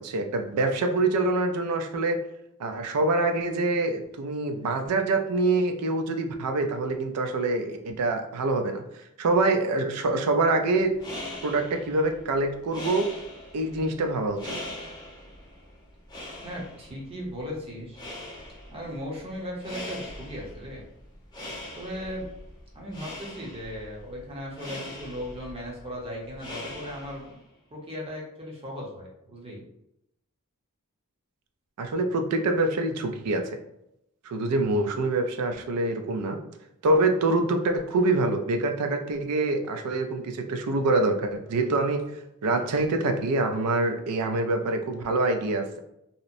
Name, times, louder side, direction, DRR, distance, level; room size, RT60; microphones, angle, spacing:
voice 1, 0.0-2.2 2.6-8.8 9.2-10.9 11.4-13.1 13.5-14.6 31.8-33.5 34.3-36.4 36.8-42.0 42.4-45.8, right 2 dB, 90° right, 6 dB, 0.4 m, -25 dB
sound 1, 10.8-27.4, left 1 dB, 20° left, 0.6 m, -42 dB
voice 2, 16.4-18.1 18.7-20.8 21.8-22.3 22.7-27.4 27.7-29.6, equal, 25° right, -3 dB, 0.7 m, -37 dB
2.8 x 2.0 x 2.5 m, 0.82 s
head